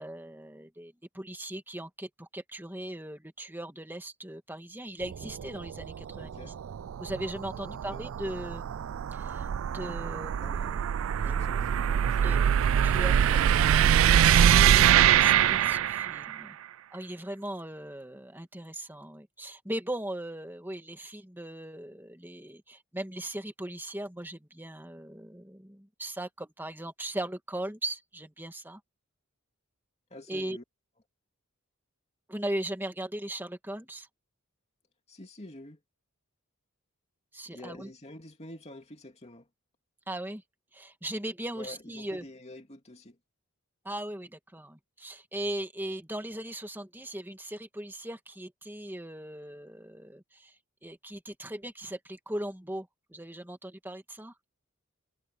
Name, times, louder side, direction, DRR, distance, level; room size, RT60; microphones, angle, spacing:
voice 1, 0.0-6.5 7.0-9.5 9.7-10.8 12.2-12.4 12.8-13.6 14.0-16.6 16.9-28.8 30.3-30.6 32.3-34.1 37.3-37.9 40.1-40.4 40.7-42.2 43.8-50.5 50.8-54.3, right 1 dB, 10° right, 2.0 m, -38 dB
sound 1, 5.0-16.4, right 9 dB, 65° right, 0.3 m, -24 dB
voice 2, 6.1-6.5 7.7-8.0 10.4-10.8 11.1-12.3 30.1-30.6 35.1-35.8 37.5-39.5 41.6-43.2, left 1 dB, 30° left, 2.7 m, -47 dB
head